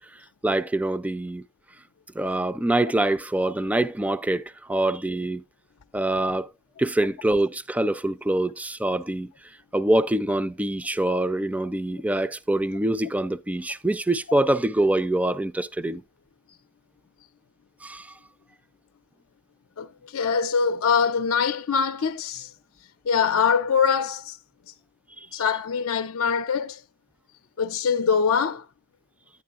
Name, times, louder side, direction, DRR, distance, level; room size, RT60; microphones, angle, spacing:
voice 1, 0.4-1.4 2.1-5.4 5.9-6.5 6.8-9.3 9.7-16.0 17.8-18.1 25.2-25.3, right 1 dB, 5° right, 0.4 m, -25 dB
voice 2, 19.8-22.5 23.0-24.4 25.3-26.8 27.6-28.6, left 6 dB, 85° left, 0.5 m, -23 dB
10.0 x 9.5 x 2.4 m
head